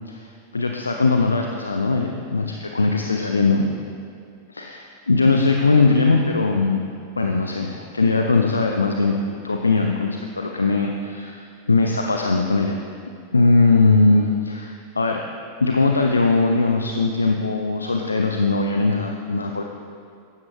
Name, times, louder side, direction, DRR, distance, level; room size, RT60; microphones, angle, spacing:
voice 1, 0.5-3.7 4.5-6.8 7.2-9.1 9.4-12.8 13.3-15.2 15.6-19.6, left 3 dB, 80° left, 3 dB, 0.7 m, -20 dB
16.0 x 12.5 x 3.3 m, 2.3 s
figure-of-eight pair, 90°, 0 cm